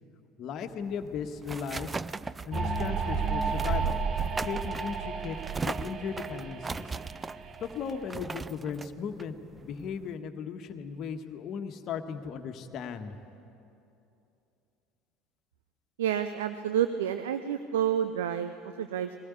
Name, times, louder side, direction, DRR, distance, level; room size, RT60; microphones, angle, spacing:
voice 1, 0.4-2.0 2.5-4.0 4.5-7.0 7.6-9.4 9.6-13.1, left 6 dB, 45° left, 6 dB, 1.5 m, -37 dB
sound 1, 0.8-10.1, right 4 dB, 20° right, 0.5 m, -39 dB
sound 2, 2.5-8.0, right 5 dB, 40° right, 1.2 m, -32 dB
voice 2, 16.0-19.1, right 9 dB, 70° right, 10 dB, 0.7 m, -29 dB
21.5 x 18.5 x 9.7 m, 2.8 s
figure-of-eight pair, 65°, 0 cm